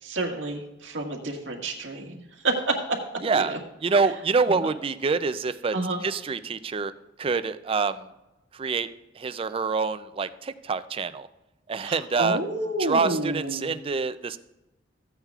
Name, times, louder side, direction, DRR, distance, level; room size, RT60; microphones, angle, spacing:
voice 1, 0.0-3.0 3.3-3.6 4.4-4.7 5.7-6.0 11.8-13.7, right 2 dB, 90° right, 1 dB, 1.7 m, -29 dB
voice 2, 3.2-3.5 3.8-5.8 6.0-6.9 7.2-8.1 8.5-8.9 9.2-11.3 11.7-12.4 12.8-14.4, right 4 dB, 30° right, 13 dB, 0.4 m, -26 dB
15.0 x 8.9 x 2.4 m, 0.98 s
head